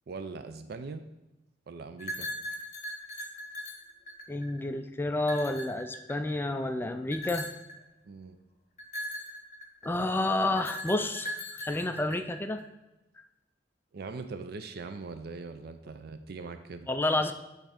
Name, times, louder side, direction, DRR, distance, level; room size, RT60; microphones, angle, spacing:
voice 1, 0.1-1.0 1.7-2.3 8.1-8.4 13.9-16.9, right 4 dB, 60° right, 9 dB, 0.4 m, -41 dB
sound 1, 2.0-4.7 5.2-6.4 7.1-7.8 8.8-10.0 10.6-12.6, equal, 40° left, 1.0 m, -39 dB
voice 2, 4.3-7.5 9.8-12.6 16.9-17.3, left 2 dB, 10° left, 8 dB, 0.3 m, -30 dB
8.6 x 3.3 x 5.1 m, 1.0 s
head